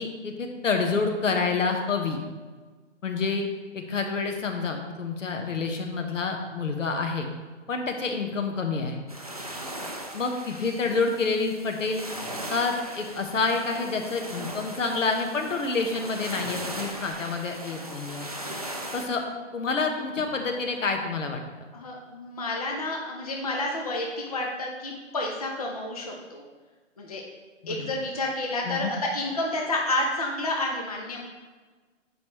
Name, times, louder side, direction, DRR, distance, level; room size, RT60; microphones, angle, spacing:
voice 1, 0.0-2.2 3.0-3.5 3.7-7.3 7.7-9.0 10.1-12.1 12.5-18.3 18.9-19.2 19.5-21.4 27.6-27.9 28.6-28.9, left 4 dB, 80° left, 3 dB, 1.2 m, -28 dB
sound 1, 9.1-19.1, right 1 dB, 30° right, 0.4 m, -38 dB
voice 2, 21.7-26.4 27.0-27.2 27.7-31.2, left 2 dB, 30° left, 0 dB, 0.6 m, -30 dB
8.1 x 5.3 x 3.1 m, 1.4 s
hypercardioid pair, 175°, 38 cm